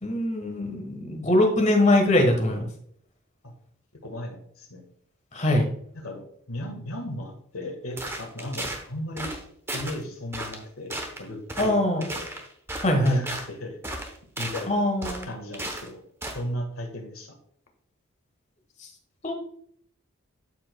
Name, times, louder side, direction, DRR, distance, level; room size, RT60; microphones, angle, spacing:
voice 1, 0.0-2.6 5.3-5.7 11.6-12.1 12.8-13.2 14.7-15.3 19.2-19.3, left 1 dB, 35° left, 3 dB, 1.4 m, -22 dB
voice 2, 4.0-4.8 5.9-9.3 9.7-12.3 12.9-14.1 14.4-14.8 15.3-16.0 16.3-17.3, left 1 dB, 80° left, 4 dB, 1.6 m, -36 dB
sound 1, 8.0-8.8 9.2-9.4 9.7-10.0 10.3-10.6 10.9-11.2 11.5-11.7 12.0-13.5 13.8-14.7 15.0-15.9 16.2-16.4, right 1 dB, 10° right, 0.9 m, -34 dB
12.5 x 4.7 x 2.3 m, 0.65 s
head